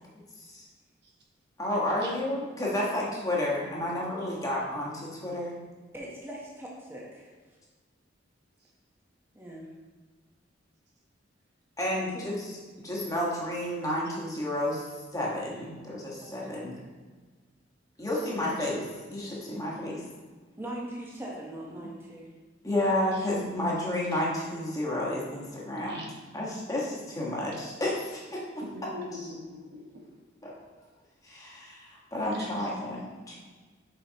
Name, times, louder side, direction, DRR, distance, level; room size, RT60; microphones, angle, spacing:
voice 1, 1.6-5.6 11.8-16.8 18.0-20.0 22.6-26.0 26.3-28.4 29.1-29.2 30.4-30.6 31.2-33.4, left 1 dB, 20° left, -5 dB, 1.3 m, -31 dB
voice 2, 5.9-7.3 9.3-9.7 12.1-12.3 16.2-16.5 18.1-18.5 20.6-22.3 26.7-26.8 32.3-32.6, right 1 dB, 15° right, -4 dB, 1.0 m, -41 dB
voice 3, 28.6-30.0 32.4-32.5, left 1 dB, 65° right, -2 dB, 1.2 m, -42 dB
7.1 x 4.9 x 2.8 m, 1.4 s
head